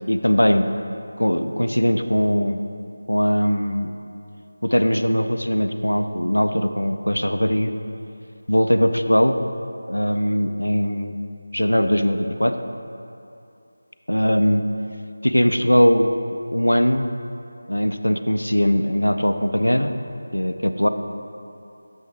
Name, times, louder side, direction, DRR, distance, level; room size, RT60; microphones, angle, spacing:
voice 1, 0.1-0.7 1.2-2.6 3.1-3.9 4.6-7.7 8.5-9.4 9.9-11.2 11.5-12.5 14.1-14.6 15.2-16.1 16.5-17.1 17.7-19.9 20.3-20.9, equal, 85° left, 8 dB, 0.4 m, -20 dB
7.0 x 3.3 x 5.9 m, 2.7 s
figure-of-eight pair, 165°, 0 cm